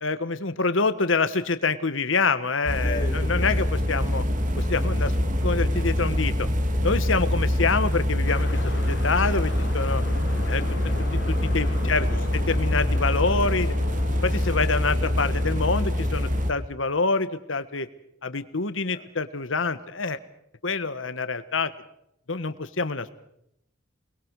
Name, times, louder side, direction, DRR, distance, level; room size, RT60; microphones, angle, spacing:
voice 1, 0.0-4.2 4.6-5.1 5.4-6.5 6.8-10.0 10.5-10.6 11.4-12.1 12.5-13.7 14.2-17.9 18.2-20.2 20.6-21.7 22.3-23.1, left 4 dB, 80° left, 12 dB, 1.4 m, -26 dB
sound 1, 2.7-16.5, left 1 dB, 40° right, 2.1 m, -25 dB
voice 2, 2.8-3.6 10.6-11.1 11.4-11.5 11.8-12.4 18.9-19.1, left 1 dB, 45° left, 4 dB, 3.0 m, -38 dB
sound 2, 8.3-15.6, left 2 dB, 65° left, 3.4 m, -38 dB
29.5 x 22.0 x 4.8 m, 0.76 s
head